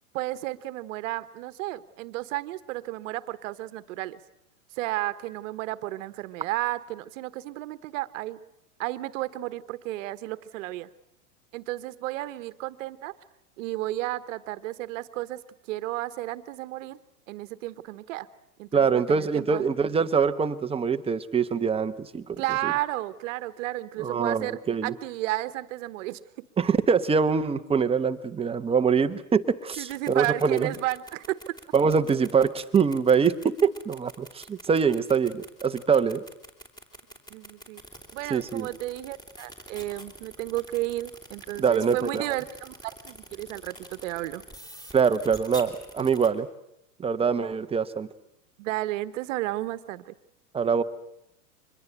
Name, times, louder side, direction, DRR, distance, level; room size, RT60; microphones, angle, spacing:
voice 1, 0.1-4.2 4.8-8.4 8.8-10.9 11.5-13.2 13.6-15.4 15.7-17.0 17.3-18.3 18.6-19.6 22.4-26.2 29.8-31.5 37.3-37.8 38.1-44.4 48.6-50.1, right 17 dB, 55° right, 14 dB, 1.3 m, -32 dB
voice 2, 18.7-22.4 22.6-22.7 24.0-24.9 26.6-30.7 31.7-36.2 38.3-38.7 41.6-42.3 44.9-46.5 47.0-48.1 50.5-50.8, right 6 dB, 15° right, 10 dB, 1.0 m, -24 dB
sound 1, 29.6-46.3, right 1 dB, 10° left, 3.6 m, -45 dB
24.5 x 21.0 x 8.2 m, 0.80 s
hypercardioid pair, 120°, 45 cm